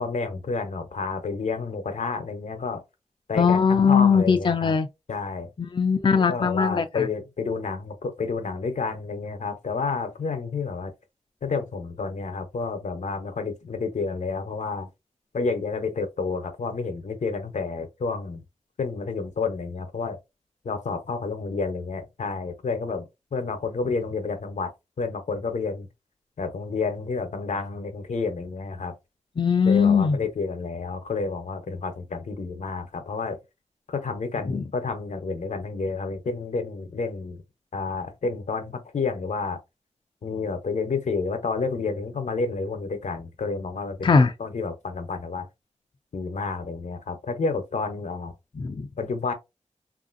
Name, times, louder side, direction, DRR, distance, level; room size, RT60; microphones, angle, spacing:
voice 1, 0.0-2.8 3.3-4.8 5.1-5.5 6.1-10.9 11.4-14.9 15.3-18.4 18.8-20.2 20.6-23.0 23.3-25.9 26.4-28.9 29.7-33.4 33.9-37.4 37.7-39.6 40.2-45.5 46.1-48.3 49.0-49.3, left 4 dB, 90° left, 0.7 m, -30 dB
voice 2, 3.4-4.9 5.6-7.1 29.4-30.2 34.5-34.6 44.0-44.3 48.6-48.9, left 5 dB, 40° left, 0.4 m, -20 dB
3.1 x 2.5 x 2.5 m
wide cardioid pair, 85°, 12 cm